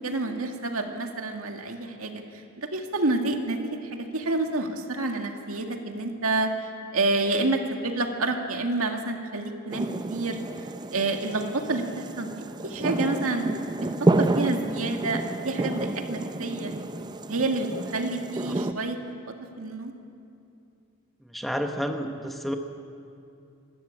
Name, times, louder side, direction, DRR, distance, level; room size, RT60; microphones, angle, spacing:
voice 1, 0.0-6.5 6.9-10.4 10.9-13.5 14.0-16.8 17.3-19.0 19.6-19.9, right 2 dB, 75° right, 3 dB, 2.0 m, -28 dB
sound 1, 9.7-18.7, right 2 dB, 20° right, 0.5 m, -30 dB
voice 2, 21.2-22.6, equal, ahead, 4 dB, 1.0 m, -30 dB
26.0 x 13.5 x 8.7 m, 2.6 s
head